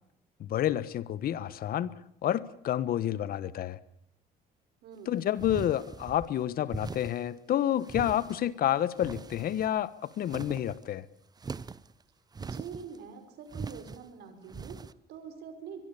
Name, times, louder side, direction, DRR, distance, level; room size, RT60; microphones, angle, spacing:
voice 1, 0.4-1.9 2.2-3.8 5.1-11.0, left 11 dB, 60° left, 18 dB, 1.4 m, -29 dB
voice 2, 4.8-5.2 12.4-15.8, right 6 dB, 75° right, 8 dB, 5.6 m, -45 dB
sound 1, 5.4-6.3 6.7-7.3 7.8-8.5 8.9-9.8 10.1-10.8 11.4-11.9 12.3-13.0 13.5-14.0 14.5-14.9, right 5 dB, 25° right, 0.9 m, -41 dB
23.5 x 22.5 x 7.1 m, 0.73 s
cardioid pair, 110°, 17 cm